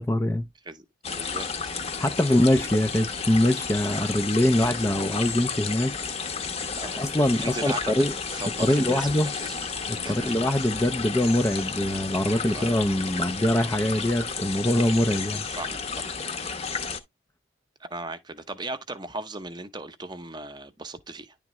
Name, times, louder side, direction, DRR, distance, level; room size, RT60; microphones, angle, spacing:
voice 1, 0.0-0.5 2.0-5.9 7.0-8.1 8.6-9.3 9.9-15.4, left 1 dB, 15° left, 0.5 m, -23 dB
voice 2, 0.6-1.5 2.2-2.5 6.7-7.1 7.4-9.6 10.0-10.3 12.5-12.7 15.5-16.1 17.8-21.3, right 2 dB, 20° right, 0.8 m, -37 dB
sound 1, 1.0-17.0, left 5 dB, 30° left, 0.9 m, -32 dB
10.5 x 3.5 x 3.0 m
head